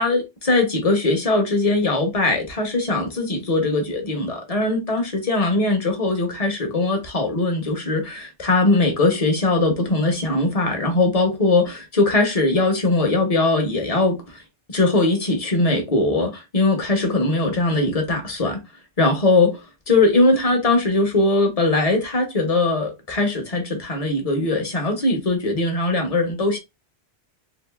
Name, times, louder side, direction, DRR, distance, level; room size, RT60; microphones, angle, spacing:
voice 1, 0.0-14.4 14.7-18.6 19.0-19.6 19.9-26.6, left 2 dB, 35° left, 1.0 m, -20 dB
4.0 x 2.5 x 2.3 m
omnidirectional pair, 1.2 m